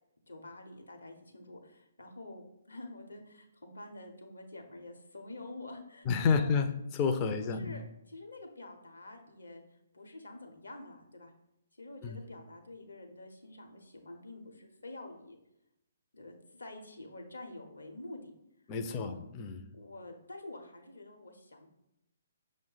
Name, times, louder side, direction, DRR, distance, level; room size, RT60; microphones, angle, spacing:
voice 1, 0.3-6.6 7.4-9.6 9.9-11.3 11.7-15.4 16.1-18.3 18.9-19.2 19.7-21.7, left 2 dB, 70° left, 0.8 m, -48 dB
voice 2, 6.1-7.8 12.0-12.3 18.7-19.7, left 5 dB, 25° left, 0.4 m, -30 dB
5.9 x 2.0 x 3.9 m
figure-of-eight pair, 130°, 0 cm